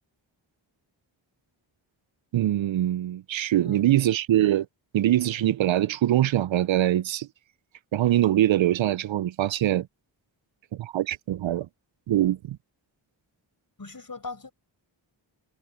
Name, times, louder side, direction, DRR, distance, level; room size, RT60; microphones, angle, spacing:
voice 1, 2.3-4.7 4.9-7.3 7.9-9.9 10.7-11.7 12.1-12.6, right 13 dB, 70° right, 0.5 m, -23 dB
voice 2, 13.8-14.5, left 3 dB, 45° left, 5.3 m, -39 dB
cardioid pair, 50°, 48 cm